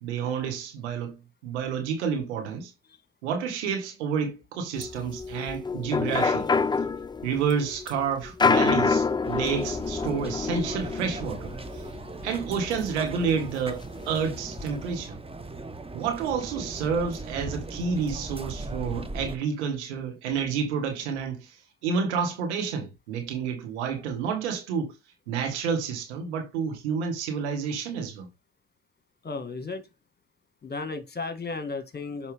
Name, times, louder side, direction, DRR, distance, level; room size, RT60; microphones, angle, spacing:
voice 1, 0.0-1.2 1.4-2.7 3.2-6.5 7.2-11.8 12.2-15.2 15.9-24.9 25.3-28.3, right 6 dB, 85° right, 1.8 m, -29 dB
sound 1, 4.8-13.3 13.7-13.8 14.0-14.7, left 4 dB, 15° left, 0.4 m, -27 dB
crowd mulling about between races, 9.2-19.4, right 2 dB, 15° right, 1.1 m, -38 dB
voice 2, 29.2-29.8 30.6-32.3, left 3 dB, 30° left, 1.9 m, -34 dB
6.4 x 5.3 x 3.5 m
hypercardioid pair, 55°, 33 cm